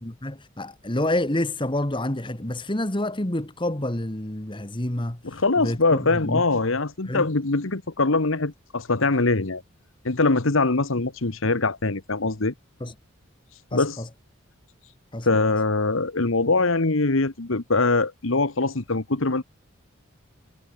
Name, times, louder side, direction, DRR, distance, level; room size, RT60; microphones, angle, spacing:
voice 1, 0.0-5.2 5.6-6.4 7.0-7.3 12.8-12.9 13.7-14.1 15.1-15.3, left 1 dB, 25° left, 1.7 m, -28 dB
voice 2, 5.2-9.6 10.0-12.5 13.7-14.0 15.2-19.4, left 3 dB, 70° left, 1.4 m, -23 dB
head